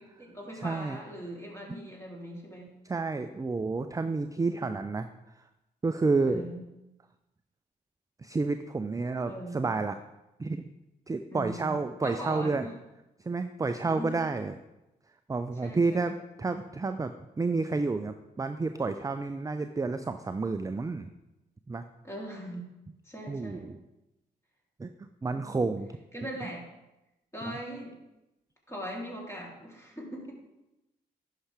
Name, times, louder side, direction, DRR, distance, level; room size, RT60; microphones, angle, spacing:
voice 1, 0.0-2.7 6.2-6.7 9.3-9.7 11.3-12.7 13.8-14.2 15.6-16.2 22.0-22.7 23.0-23.7 26.1-26.6 27.3-28.0 28.7-30.3, equal, 15° left, -2 dB, 3.2 m, -40 dB
voice 2, 0.6-1.0 2.8-5.1 5.8-6.4 8.2-9.9 10.4-10.6 11.1-12.7 13.3-14.5 15.3-21.1 21.7-21.8 23.3-23.8 24.8-25.9 27.5-27.6, right 3 dB, 15° right, 9 dB, 0.5 m, -30 dB
11.0 x 5.7 x 3.4 m, 0.95 s
hypercardioid pair, 40°, 20 cm